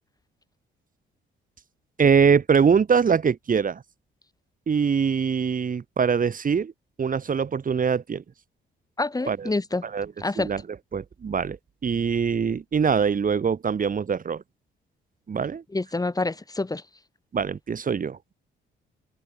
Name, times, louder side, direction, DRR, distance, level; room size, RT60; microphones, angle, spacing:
voice 1, 2.0-3.8 4.7-6.7 7.0-8.2 9.3-9.5 9.8-10.1 10.4-10.6 10.9-11.6 11.8-14.4 15.3-15.6 17.3-18.4, right 6 dB, 45° right, 4.7 m, -23 dB
voice 2, 9.0-9.8 10.2-10.5 15.7-16.8, left 2 dB, 20° left, 5.3 m, -27 dB
cardioid pair, 90°, 20 cm